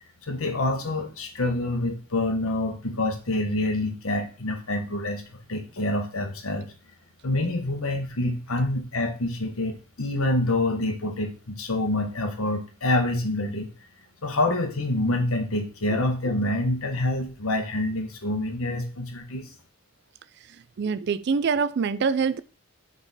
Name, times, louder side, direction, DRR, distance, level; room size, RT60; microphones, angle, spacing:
voice 1, 0.2-5.2 5.5-6.7 7.2-13.7 14.2-19.5, left 2 dB, 75° left, 1.3 m, -27 dB
voice 2, 20.8-22.4, right 5 dB, 50° right, 0.4 m, -24 dB
8.0 x 3.9 x 4.1 m
head